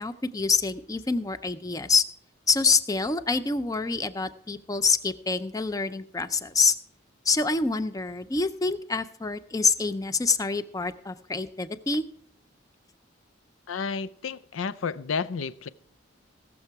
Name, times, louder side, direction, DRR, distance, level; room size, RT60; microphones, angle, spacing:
voice 1, 0.0-2.0 2.5-6.8 7.2-12.0, left 4 dB, 15° left, 12 dB, 0.4 m, -26 dB
voice 2, 13.7-15.7, left 5 dB, 85° left, 17 dB, 0.5 m, -31 dB
17.5 x 6.7 x 4.7 m, 0.66 s
head